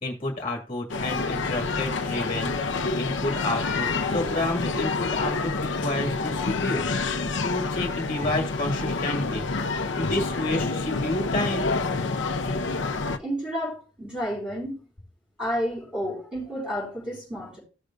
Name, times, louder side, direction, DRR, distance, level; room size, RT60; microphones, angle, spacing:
voice 1, 0.0-9.4 9.9-11.7, left 2 dB, 30° left, 1.8 m, -30 dB
sound 1, 0.9-13.2, left 3 dB, 75° left, 0.7 m, -28 dB
voice 2, 13.2-14.9 15.4-17.6, equal, 5° right, 4.7 m, -31 dB
15.0 x 6.5 x 2.4 m
head